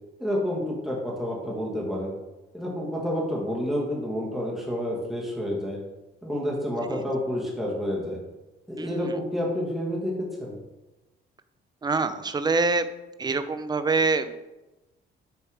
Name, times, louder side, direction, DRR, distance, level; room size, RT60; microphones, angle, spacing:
voice 1, 0.2-2.1 2.5-5.8 6.2-8.2 8.7-10.6, equal, ahead, -4 dB, 1.4 m, -29 dB
voice 2, 8.8-9.1 11.8-12.9 13.2-14.3, right 3 dB, 20° right, 11 dB, 0.4 m, -25 dB
5.9 x 3.4 x 4.7 m, 1.1 s
cardioid pair, 90°, 20 cm